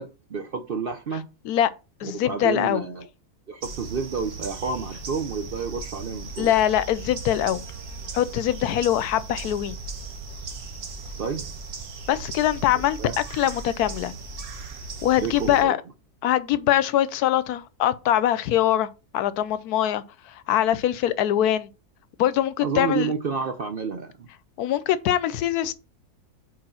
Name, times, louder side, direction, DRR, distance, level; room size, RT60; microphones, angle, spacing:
voice 1, 0.0-1.3 2.0-3.1 3.5-6.5 11.2-11.4 12.7-13.2 15.2-15.8 22.6-24.3, right 5 dB, 55° right, 0.6 m, -30 dB
voice 2, 2.0-2.8 6.4-7.6 8.1-9.8 12.1-13.0 13.3-14.1 15.0-15.8 16.2-20.0 20.5-21.7 22.2-23.1 24.6-25.7, left 12 dB, 85° left, 1.1 m, -23 dB
sound 1, 3.6-15.6, right 4 dB, 70° right, 1.5 m, -37 dB
4.8 x 4.3 x 5.6 m
omnidirectional pair, 1.6 m